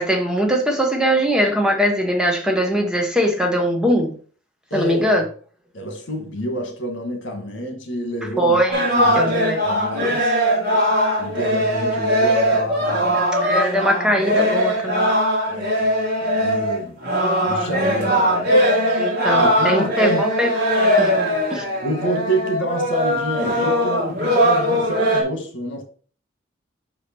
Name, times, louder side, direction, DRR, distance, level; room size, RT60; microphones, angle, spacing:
voice 1, 0.0-4.1 4.7-5.2 8.4-8.8 9.2-9.6 13.4-15.1 19.0-20.5 21.0-21.1 21.5-21.6, equal, 5° right, 1.0 m, -20 dB
voice 2, 4.7-5.1 5.7-8.6 8.9-10.3 11.2-13.2 15.5-15.9 16.2-17.0 17.4-18.5 19.3-20.2 21.8-25.8, right 1 dB, 75° left, 1.7 m, -28 dB
sound 1, 8.7-25.2, equal, 55° right, 2.1 m, -20 dB
5.6 x 4.9 x 4.4 m
head